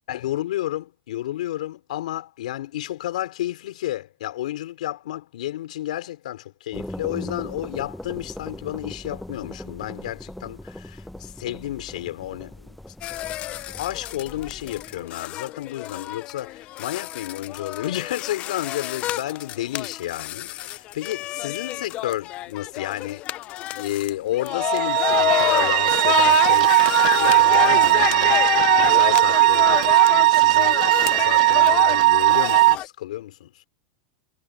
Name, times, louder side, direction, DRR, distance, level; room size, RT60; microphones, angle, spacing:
voice 1, 0.1-12.8 13.7-23.3 23.6-33.7, left 14 dB, 85° left, 4.9 m, -31 dB
sound 1, 6.7-15.1, left 1 dB, ahead, 0.7 m, -39 dB
sound 2, 13.0-32.9, left 15 dB, 30° left, 0.4 m, -28 dB
sound 3, 24.5-32.7, right 20 dB, 70° right, 0.6 m, -18 dB
supercardioid pair, 160°, 4 cm